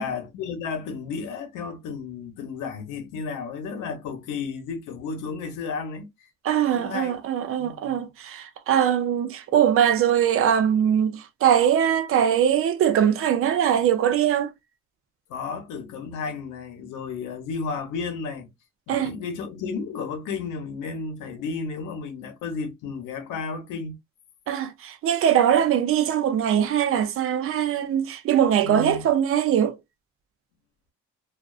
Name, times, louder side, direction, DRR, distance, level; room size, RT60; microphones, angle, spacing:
voice 1, 0.0-6.1 6.7-7.2 7.6-8.0 15.3-18.5 18.9-24.0 28.6-29.1, left 5 dB, 85° left, 0.9 m, -33 dB
voice 2, 6.4-14.5 18.9-19.1 24.5-29.8, right 9 dB, 45° right, 0.4 m, -22 dB
2.4 x 2.3 x 2.3 m
cardioid pair, 140°, 30 cm